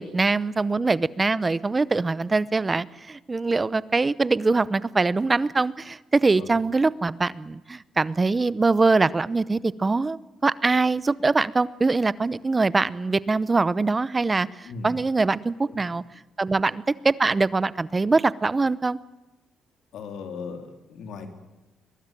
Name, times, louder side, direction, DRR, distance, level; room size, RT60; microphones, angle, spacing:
voice 1, 0.0-16.0 16.4-19.0, right 3 dB, 25° right, 19 dB, 0.7 m, -23 dB
voice 2, 19.9-21.3, left 5 dB, 75° left, 6 dB, 3.5 m, -37 dB
22.5 x 20.0 x 9.1 m, 1.0 s
cardioid pair, 90°, 0 cm